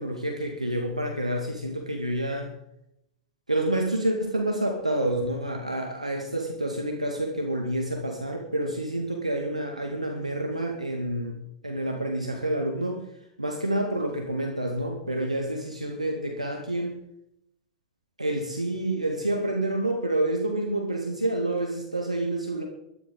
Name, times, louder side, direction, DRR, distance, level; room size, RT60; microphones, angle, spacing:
voice 1, 0.0-2.5 3.5-11.4 11.6-13.1 13.4-17.0 18.2-22.6, right 1 dB, 90° right, 2 dB, 2.0 m, -28 dB
21.5 x 13.5 x 3.9 m, 0.83 s
figure-of-eight pair, 95°, 3 cm